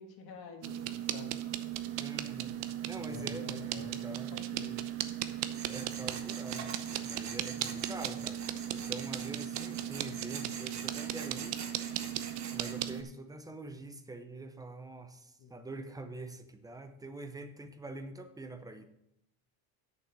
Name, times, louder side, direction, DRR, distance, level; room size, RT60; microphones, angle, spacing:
voice 1, 0.0-1.3 3.0-4.8 7.6-7.7 15.4-15.6, left 5 dB, 50° left, 3 dB, 1.9 m, -48 dB
sound 1, 0.6-13.0, right 11 dB, 65° right, 0.8 m, -37 dB
voice 2, 2.0-2.5 2.8-4.4 5.7-6.7 7.0-8.4 8.7-11.6 12.5-18.8, right 2 dB, 10° right, 8 dB, 0.6 m, -45 dB
Tools, 5.5-12.8, right 6 dB, 35° right, 1.4 m, -45 dB
8.4 x 6.8 x 6.1 m, 0.79 s
cardioid pair, 145°, 46 cm